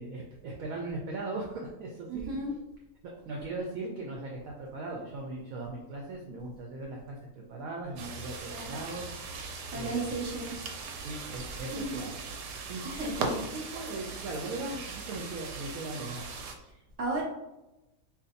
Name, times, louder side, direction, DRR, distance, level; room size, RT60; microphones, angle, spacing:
voice 1, 0.0-2.3 3.3-9.1 9.7-10.2 11.0-12.2 12.7-16.3, right 2 dB, 70° right, 0 dB, 0.9 m, -39 dB
voice 2, 2.1-2.5 8.4-8.8 9.7-10.5 11.7-11.9 12.8-13.1 17.0-17.2, right 2 dB, 25° right, -4 dB, 1.0 m, -34 dB
sound 1, 8.0-16.5, right 4 dB, 90° right, 1.2 m, -39 dB
2.5 x 2.5 x 3.8 m, 0.97 s
omnidirectional pair, 1.7 m